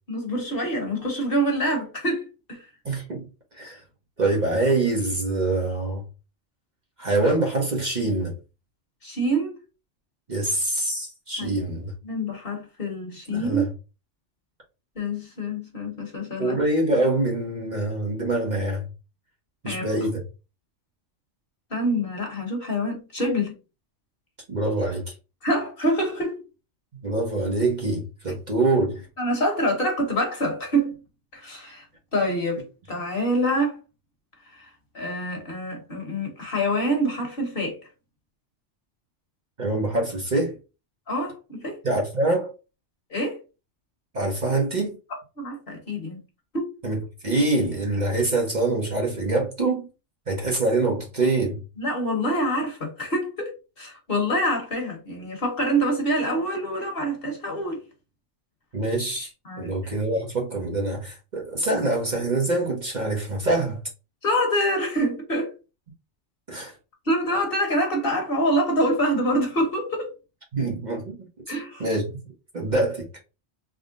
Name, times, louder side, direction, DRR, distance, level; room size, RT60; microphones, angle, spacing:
voice 1, 0.1-2.7 9.0-9.6 11.4-11.5 12.0-13.7 14.9-16.6 19.6-20.1 21.7-23.5 25.4-26.4 29.2-31.0 31.3-33.8 34.5-37.8 41.1-41.8 43.1-43.4 45.1-46.2 46.5-46.8 51.8-57.8 59.4-59.9 64.2-65.5 67.0-70.1 71.5-71.9, equal, 50° left, 1.4 m, -26 dB
voice 2, 2.8-3.2 3.6-3.8 4.2-6.0 7.0-8.3 10.3-11.9 13.3-13.7 16.4-18.8 19.6-20.2 24.5-25.0 27.0-29.1 39.6-40.6 41.8-42.5 44.1-45.0 46.8-49.9 50.3-51.6 58.7-59.3 59.6-63.8 66.5-66.7 70.5-72.2 72.5-73.1, right 2 dB, 40° right, 0.9 m, -25 dB
3.6 x 2.1 x 3.7 m
omnidirectional pair, 1.3 m